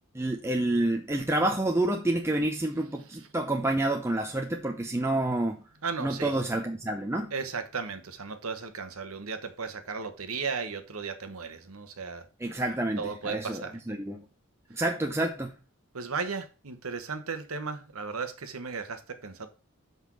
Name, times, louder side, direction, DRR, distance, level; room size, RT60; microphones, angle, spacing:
voice 1, 0.1-5.6 6.0-7.3 12.4-14.3 14.7-15.6, right 1 dB, 10° right, 0.7 m, -28 dB
voice 2, 5.8-6.4 7.3-12.3 13.0-13.8 15.9-19.5, right 5 dB, 75° right, 1.2 m, -35 dB
6.1 x 5.5 x 6.2 m
head